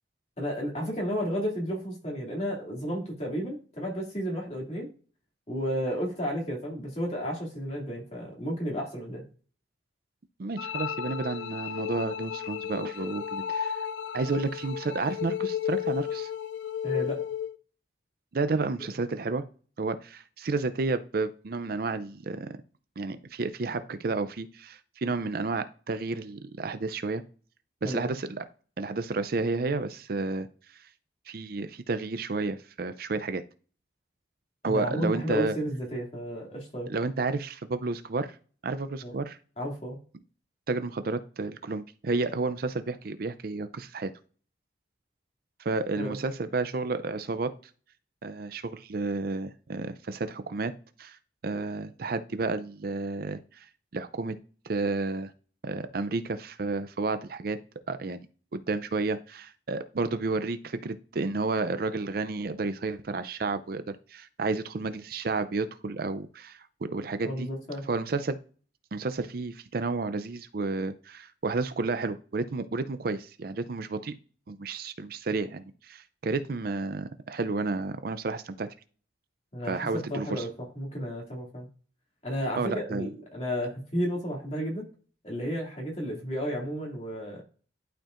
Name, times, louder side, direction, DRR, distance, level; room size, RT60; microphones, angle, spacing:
voice 1, 0.4-4.9 5.5-9.2 16.8-17.2 27.8-28.1 34.6-36.9 39.0-39.1 39.6-40.0 46.0-46.2 67.2-67.8 79.5-81.7 82.2-84.8 85.2-87.4, equal, 35° left, -2 dB, 2.4 m, -32 dB
voice 2, 10.4-13.8 14.1-16.3 18.3-19.4 19.8-22.5 23.0-27.2 27.8-28.4 28.8-30.5 31.3-33.4 34.6-35.6 36.9-38.4 38.6-39.4 40.7-44.1 45.6-47.5 48.2-50.7 51.0-51.2 51.4-53.7 53.9-54.4 54.7-55.3 55.6-57.6 57.9-58.2 58.5-67.5 67.9-68.4 68.9-74.1 74.5-78.7 79.7-80.5 82.6-83.1, right 3 dB, 55° right, 11 dB, 0.5 m, -31 dB
sound 1, 10.6-17.6, left 9 dB, 90° left, 0.5 m, -33 dB
11.5 x 4.5 x 2.5 m, 0.40 s
head